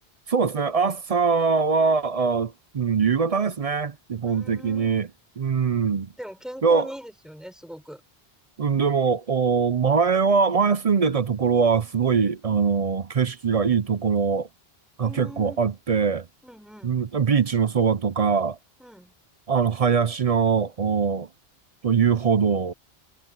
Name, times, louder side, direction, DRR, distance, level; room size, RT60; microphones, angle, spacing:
voice 1, 0.3-5.1 5.4-6.1 6.6-6.9 8.6-14.5 15.0-16.3 16.8-18.6 19.5-21.3 21.8-22.7, right 6 dB, 45° right, 0.6 m, -22 dB
voice 2, 4.2-5.0 6.2-8.0 15.0-15.6 16.4-17.0 18.8-19.1, equal, ahead, 5.4 m, -40 dB
omnidirectional pair, 1.0 m